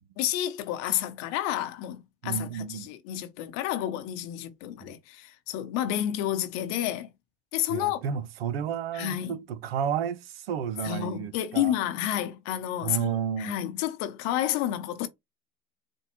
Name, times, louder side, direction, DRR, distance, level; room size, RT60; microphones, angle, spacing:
voice 1, 0.2-7.1 7.5-8.0 8.9-9.4 10.8-15.1, left 12 dB, 60° left, 0.8 m, -30 dB
voice 2, 2.2-2.9 4.8-4.9 7.7-11.7 12.8-13.6, right 8 dB, 85° right, 0.6 m, -32 dB
4.3 x 2.2 x 3.0 m
hypercardioid pair, 80°, 30 cm